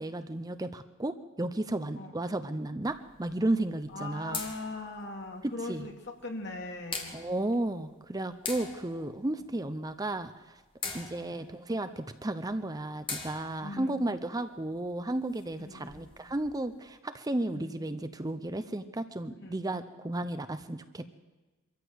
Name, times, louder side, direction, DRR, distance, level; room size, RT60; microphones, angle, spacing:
voice 1, 0.0-4.4 5.7-5.9 7.1-10.6 10.9-21.1, right 1 dB, 20° right, 10 dB, 0.6 m, -33 dB
sound 1, 2.8-17.0, left 4 dB, 25° left, 2.1 m, -45 dB
voice 2, 3.9-7.2 10.8-11.5 13.6-14.2 15.6-16.1 17.5-18.1 19.4-20.0, left 2 dB, 55° left, 2 dB, 2.7 m, -41 dB
24.0 x 14.0 x 8.0 m, 1.2 s
head